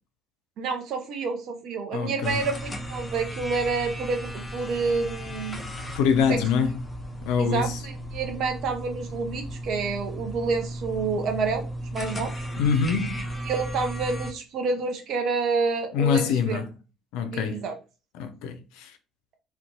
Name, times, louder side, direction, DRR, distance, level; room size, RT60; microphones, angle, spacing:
voice 1, 0.6-5.6 6.3-6.4 7.4-12.5 13.5-16.6 17.3-17.7, right 4 dB, 55° right, 0.5 m, -28 dB
voice 2, 1.9-2.4 5.9-6.7 7.3-7.8 12.6-13.3 15.9-16.7 17.1-17.6 18.1-18.9, left 6 dB, 65° left, 0.3 m, -25 dB
sound 1, 2.2-14.3, equal, 20° left, 0.6 m, -35 dB
2.5 x 2.2 x 2.5 m
figure-of-eight pair, 50°, 0 cm